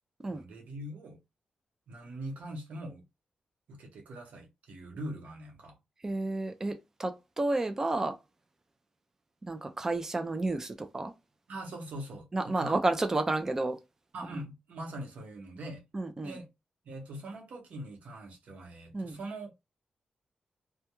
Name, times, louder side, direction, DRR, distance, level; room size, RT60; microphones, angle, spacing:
voice 1, 0.3-1.2 1.9-3.0 3.7-5.8 11.5-12.8 14.1-15.8 16.2-16.5 16.8-19.5, right 1 dB, 90° right, 0.9 m, -42 dB
voice 2, 6.0-8.2 9.5-11.1 12.3-13.8 15.9-16.4 18.9-19.2, right 2 dB, 20° right, 0.3 m, -31 dB
2.3 x 2.1 x 2.9 m
wide cardioid pair, 170°, 2 cm